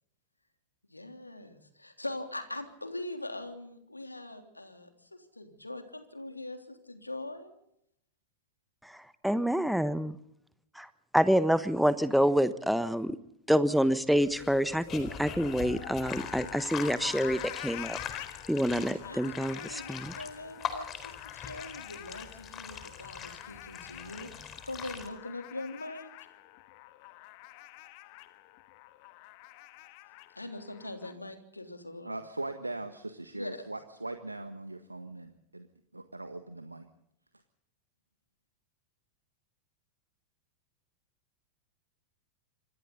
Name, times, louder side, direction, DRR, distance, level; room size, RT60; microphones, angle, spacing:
voice 1, 0.9-7.5 19.0-26.1 30.3-32.1 33.3-33.6, left 2 dB, 85° left, 6 dB, 3.2 m, -42 dB
voice 2, 8.8-10.2 10.8-10.9 11.1-13.2 13.5-18.0 18.5-20.1, equal, ahead, 13 dB, 1.1 m, -27 dB
sound 1, 14.1-31.1, left 18 dB, 45° left, 1.5 m, -46 dB
sound 2, 14.2-25.1, left 7 dB, 25° left, 4.2 m, -43 dB
voice 3, 32.0-35.7 35.9-36.9, right 2 dB, 85° right, 8 dB, 1.5 m, -40 dB
27.5 x 26.0 x 4.0 m, 0.75 s
figure-of-eight pair, 90°, 0 cm